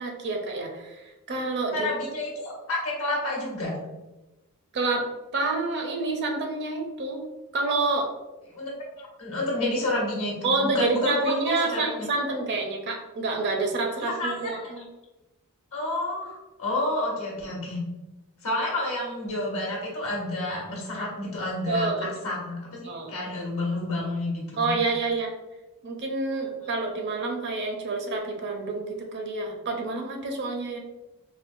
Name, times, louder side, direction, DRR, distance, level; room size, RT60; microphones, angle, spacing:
voice 1, 0.0-1.9 4.7-7.2 7.5-8.1 10.4-14.9 21.7-22.1 22.8-23.3 24.6-25.3 25.8-30.8, right 3 dB, 50° right, 3 dB, 0.5 m, -28 dB
voice 2, 1.7-3.8 8.5-11.8 14.0-14.8 15.7-17.8 18.4-24.7, left 2 dB, 70° left, -3 dB, 1.1 m, -30 dB
4.3 x 2.0 x 2.5 m, 1.0 s
head